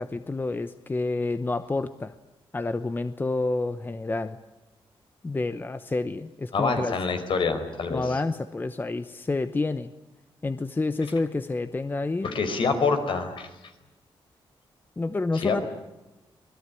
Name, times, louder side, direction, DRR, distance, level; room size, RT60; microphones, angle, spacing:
voice 1, 0.0-2.1 2.5-4.4 5.2-7.0 7.9-9.9 10.4-12.3 15.0-15.6, left 3 dB, 20° left, 11 dB, 0.9 m, -29 dB
voice 2, 6.5-8.0 12.2-13.5 15.3-15.6, left 4 dB, 60° left, 7 dB, 4.8 m, -26 dB
26.5 x 21.0 x 9.9 m, 1.0 s
wide cardioid pair, 140°, 10 cm